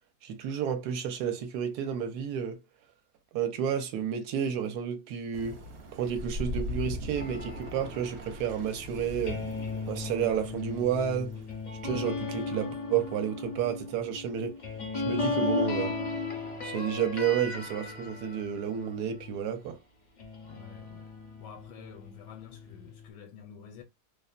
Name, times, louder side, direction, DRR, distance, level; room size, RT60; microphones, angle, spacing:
voice 1, 0.2-2.6 3.3-5.6 5.9-9.4 9.9-11.3 11.8-14.6 14.9-16.0 16.6-19.8, right 8 dB, 75° right, 1.1 m, -31 dB
sound 1, 5.3-12.2, left 1 dB, 90° right, 0.5 m, -40 dB
sound 2, 7.1-19.7 20.2-23.1, left 3 dB, 50° left, 0.5 m, -36 dB
voice 2, 20.4-21.1 21.4-23.8, left 7 dB, 80° left, 1.2 m, -49 dB
2.8 x 2.1 x 2.3 m
omnidirectional pair, 1.8 m